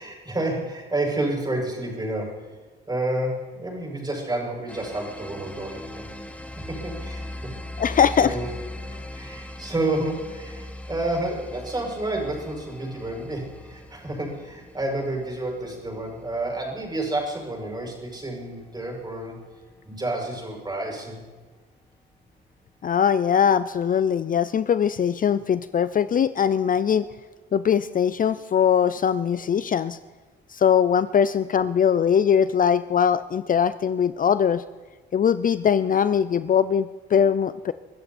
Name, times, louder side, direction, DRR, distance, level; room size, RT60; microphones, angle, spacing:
voice 1, 0.0-2.5 2.9-6.1 6.7-7.3 7.8-8.5 9.1-19.4 19.9-21.2, right 2 dB, 20° right, -1 dB, 7.0 m, -30 dB
sound 1, 4.7-20.1, left 1 dB, 5° left, 1.6 m, -40 dB
voice 2, 7.8-8.3 22.8-27.0 27.5-30.0 30.5-34.6 35.1-37.7, left 8 dB, 45° left, 14 dB, 0.6 m, -21 dB
24.0 x 13.5 x 4.3 m, 1.4 s
cardioid pair, 90°, 20 cm